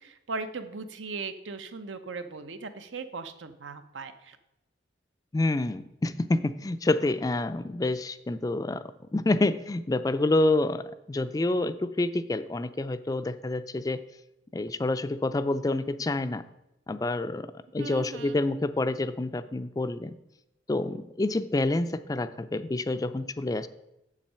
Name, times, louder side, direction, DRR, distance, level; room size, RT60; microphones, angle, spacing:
voice 1, 0.0-4.4 17.8-18.4, right 4 dB, 80° right, 9 dB, 0.8 m, -38 dB
voice 2, 5.3-8.8 9.1-14.0 14.5-16.4 16.9-17.5 17.7-20.1 20.7-23.7, left 2 dB, 20° left, 12 dB, 0.3 m, -28 dB
7.5 x 7.4 x 5.6 m, 0.91 s
head